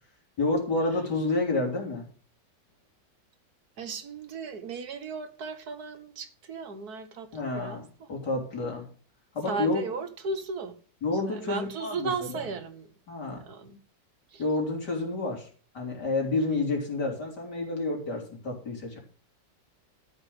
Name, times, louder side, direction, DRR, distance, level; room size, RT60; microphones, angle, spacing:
voice 1, 0.4-2.1 7.3-8.9 9.3-9.8 11.0-12.4 13.1-13.4 14.4-15.5 15.7-19.0, left 2 dB, 65° left, 3.9 m, -29 dB
voice 2, 3.8-8.1 9.5-10.8 11.2-12.9 13.5-13.8 14.3-14.4, right 4 dB, 60° right, 1.8 m, -36 dB
13.0 x 5.5 x 7.8 m
omnidirectional pair, 1.9 m